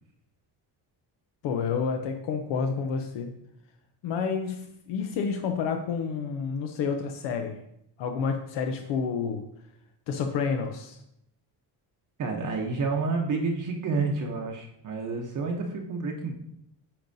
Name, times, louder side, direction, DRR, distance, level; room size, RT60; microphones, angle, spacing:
voice 1, 1.4-3.4 4.0-7.6 8.0-9.4 10.1-11.0, left 6 dB, 85° left, 5 dB, 0.7 m, -29 dB
voice 2, 12.2-16.3, right 4 dB, 45° right, 1 dB, 0.9 m, -29 dB
8.6 x 5.4 x 2.6 m, 0.76 s
cardioid pair, 150°, 42 cm